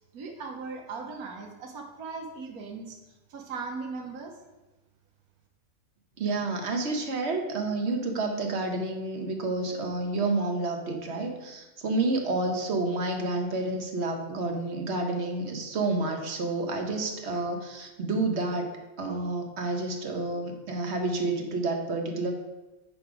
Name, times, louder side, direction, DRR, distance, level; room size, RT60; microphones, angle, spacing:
voice 1, 0.1-3.0 3.3-4.3, right 4 dB, 90° right, 2 dB, 1.5 m, -38 dB
voice 2, 6.2-22.3, right 2 dB, 50° right, 3 dB, 1.2 m, -29 dB
9.6 x 4.0 x 4.9 m, 1.1 s
omnidirectional pair, 1.5 m